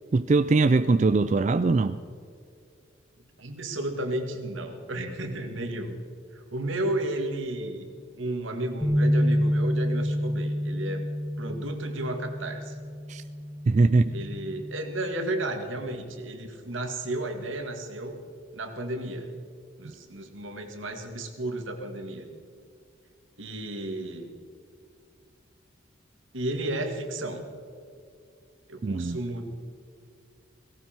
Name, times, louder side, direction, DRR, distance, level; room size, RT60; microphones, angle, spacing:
voice 1, 0.1-2.0 13.1-13.2 13.7-14.1 28.8-29.2, right 3 dB, 35° right, 12 dB, 0.3 m, -21 dB
voice 2, 3.4-6.0 6.3-7.9 8.2-11.0 11.4-12.8 14.1-18.2 18.5-19.3 19.8-22.3 23.4-24.3 26.3-27.5 28.7-29.5, right 1 dB, 80° right, 5 dB, 2.0 m, -33 dB
sound 1, 8.8-15.1, equal, ahead, 1.9 m, -28 dB
17.5 x 17.5 x 4.5 m, 2.3 s
head